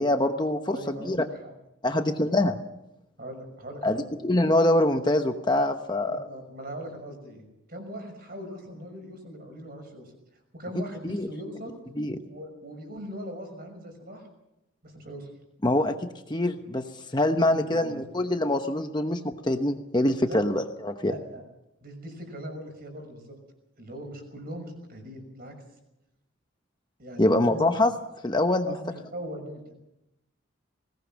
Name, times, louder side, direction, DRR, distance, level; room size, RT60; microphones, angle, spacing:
voice 1, 0.0-1.2 1.8-2.6 3.8-6.2 11.0-11.3 12.0-12.2 15.6-16.0 16.3-16.9 17.1-21.1 27.2-27.9 28.2-28.7, left 1 dB, 20° left, 6 dB, 1.0 m, -24 dB
voice 2, 0.7-1.5 1.9-2.1 3.2-4.1 6.1-10.1 10.5-11.8 12.2-14.2 14.8-15.3 17.4-18.0 20.2-20.4 21.0-21.4 21.8-23.4 23.8-25.5 27.0-27.7 28.6-29.7, equal, 45° right, 5 dB, 6.1 m, -40 dB
21.0 x 18.0 x 7.4 m, 0.89 s
head